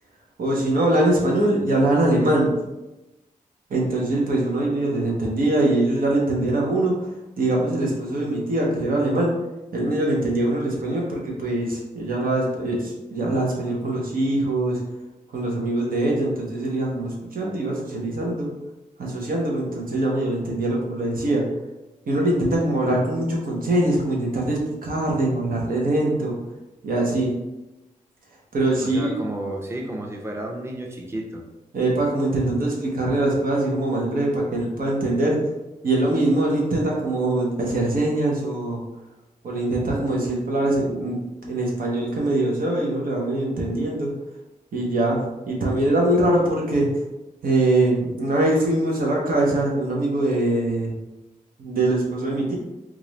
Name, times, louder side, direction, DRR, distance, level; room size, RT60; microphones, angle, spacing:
voice 1, 0.4-2.6 3.7-7.1 7.4-9.3 9.7-14.8 15.3-18.5 19.0-21.4 22.1-26.3 26.8-27.3 28.5-29.1 31.7-35.4 35.8-38.8 39.4-41.2 41.5-44.1 44.7-46.9 47.4-50.9 51.6-52.6, right 1 dB, 90° right, -2 dB, 0.9 m, -23 dB
voice 2, 28.8-31.4, right 1 dB, 20° right, 1 dB, 0.6 m, -32 dB
3.1 x 2.5 x 4.0 m, 1.0 s
wide cardioid pair, 75°, 14 cm